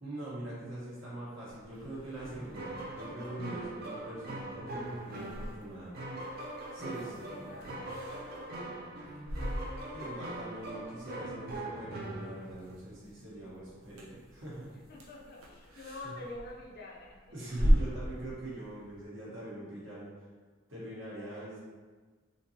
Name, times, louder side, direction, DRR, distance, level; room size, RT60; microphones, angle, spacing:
voice 1, 0.0-5.9 6.7-7.8 9.9-14.8 16.0-16.3 17.3-20.1 20.7-21.6, right 1 dB, 65° right, -7 dB, 1.2 m, -43 dB
sound 1, 1.5-19.0, equal, 90° right, 0.8 m, -38 dB
sound 2, 2.2-12.8, right 1 dB, 45° right, 0.5 m, -42 dB
voice 2, 6.8-8.9 14.9-17.4, left 2 dB, 45° left, -2 dB, 0.5 m, -47 dB
3.7 x 2.8 x 2.8 m, 1.4 s
head